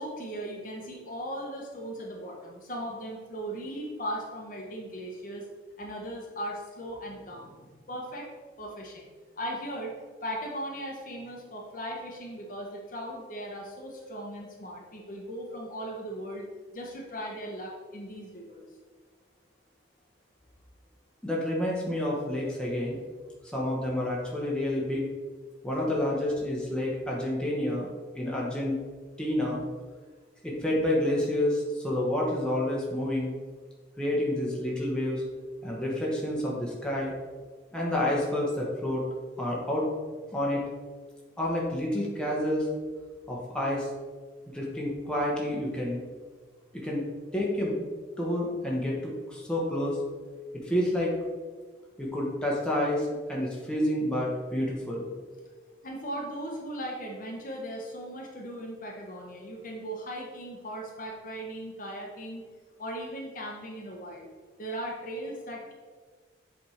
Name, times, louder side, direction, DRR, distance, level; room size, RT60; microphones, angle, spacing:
voice 1, 0.0-5.5 5.8-8.3 8.6-9.1 9.4-9.9 10.2-16.5 16.7-18.7 55.8-62.4 62.8-64.3 64.6-65.7, equal, 45° left, -1 dB, 1.0 m, -38 dB
voice 2, 21.2-23.0 23.5-25.1 25.6-27.9 28.1-28.8 29.2-29.6 30.4-33.3 34.0-35.2 35.6-37.1 37.7-39.0 39.4-39.9 40.3-40.6 41.4-42.7 43.3-43.9 44.5-46.0 46.7-47.1 47.3-47.8 48.2-50.0 50.6-51.2 52.0-55.0, left 1 dB, 5° left, -4 dB, 1.1 m, -29 dB
7.6 x 3.5 x 4.3 m, 1.4 s
head